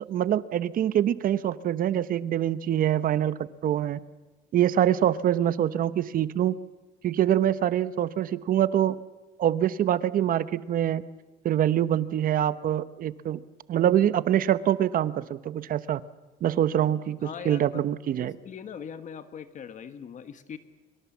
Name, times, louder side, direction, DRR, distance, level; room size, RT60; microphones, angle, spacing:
voice 1, 0.1-4.0 4.5-6.5 7.0-9.0 9.4-11.0 11.4-13.4 13.7-16.0 16.4-18.3, right 11 dB, 55° right, 15 dB, 0.9 m, -25 dB
voice 2, 17.2-17.8 18.2-20.6, left 7 dB, 45° left, 10 dB, 1.4 m, -41 dB
24.5 x 23.5 x 7.3 m, 1.2 s
cardioid pair, 110°, 17 cm